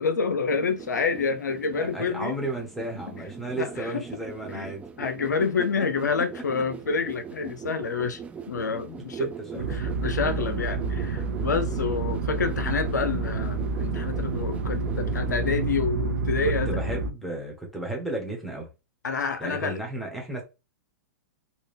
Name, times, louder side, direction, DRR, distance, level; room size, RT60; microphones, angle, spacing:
voice 1, 0.0-2.4 3.6-4.0 4.5-4.7 5.0-8.2 8.5-9.3 9.5-16.8 19.0-19.8, left 5 dB, 90° left, 0.5 m, -28 dB
sound 1, 0.5-15.7, right 6 dB, 15° right, 0.4 m, -41 dB
voice 2, 1.8-4.8 9.2-9.7 16.4-18.7 19.4-20.4, right 2 dB, ahead, 1.3 m, -33 dB
sound 2, 9.6-17.1, right 4 dB, 70° right, 0.7 m, -29 dB
3.8 x 2.2 x 3.4 m
hypercardioid pair, 115°, 9 cm